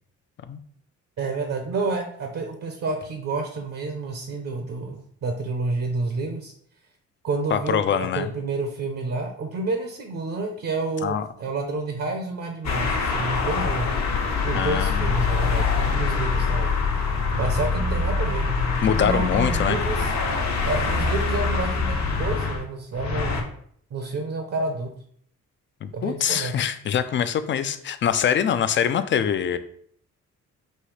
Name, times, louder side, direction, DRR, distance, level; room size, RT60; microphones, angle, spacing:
voice 1, 1.2-6.5 7.2-14.0 14.4-17.0 17.3-20.1 20.6-23.5 23.9-24.9 25.9-26.7, right 3 dB, 55° right, 4 dB, 0.8 m, -29 dB
voice 2, 7.5-8.3 11.0-11.2 14.5-15.1 18.8-19.8 25.8-29.6, left 8 dB, 40° left, 11 dB, 0.4 m, -24 dB
sound 1, 12.6-22.6 22.9-23.4, left 4 dB, 60° left, 1.0 m, -24 dB
5.5 x 2.7 x 3.2 m, 0.63 s
cardioid pair, 90°, 30 cm